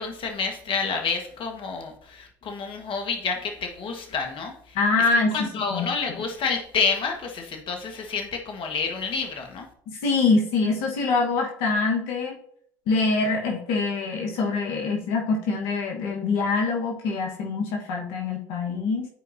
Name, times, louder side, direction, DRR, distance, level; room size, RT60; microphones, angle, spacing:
voice 1, 0.0-4.5 5.3-9.7, left 5 dB, 55° left, 3 dB, 1.4 m, -29 dB
voice 2, 4.7-5.9 9.9-12.4 12.9-19.1, left 3 dB, 80° left, 1 dB, 1.3 m, -24 dB
11.0 x 4.6 x 2.7 m, 0.63 s
hypercardioid pair, 65°, 10 cm